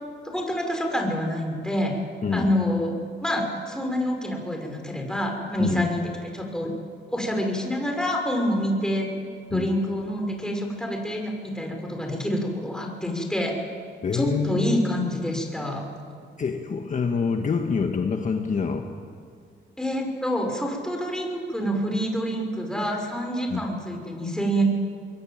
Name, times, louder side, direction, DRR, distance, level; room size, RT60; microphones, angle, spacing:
voice 1, 0.3-1.9 2.3-2.9 3.2-6.7 7.1-9.1 9.5-13.5 14.1-15.8 19.8-24.6, equal, 5° left, 2 dB, 6.2 m, -27 dB
voice 2, 2.2-2.5 5.6-5.9 9.5-9.8 14.0-14.8 16.4-18.9 23.5-23.7, left 5 dB, 40° left, 4 dB, 1.7 m, -26 dB
23.0 x 22.5 x 9.0 m, 2.2 s
cardioid pair, 90°, 20 cm